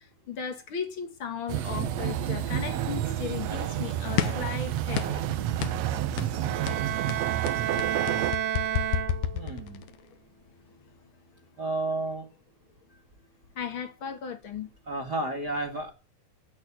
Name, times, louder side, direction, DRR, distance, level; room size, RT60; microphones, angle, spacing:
voice 1, 0.3-5.2 13.6-14.7, left 7 dB, 50° left, 1.7 m, -36 dB
sound 1, 1.5-8.3, right 11 dB, 85° right, 1.4 m, -30 dB
sound 2, 4.2-4.5 5.0-5.3 5.6-5.8 6.2-6.4 6.7-10.0, left 11 dB, 70° left, 2.1 m, -30 dB
Bowed string instrument, 6.4-9.6, right 12 dB, 70° right, 1.7 m, -31 dB
voice 2, 9.3-9.8 11.6-12.3 14.9-15.9, right 2 dB, 35° right, 1.8 m, -31 dB
9.0 x 8.7 x 9.5 m
omnidirectional pair, 4.0 m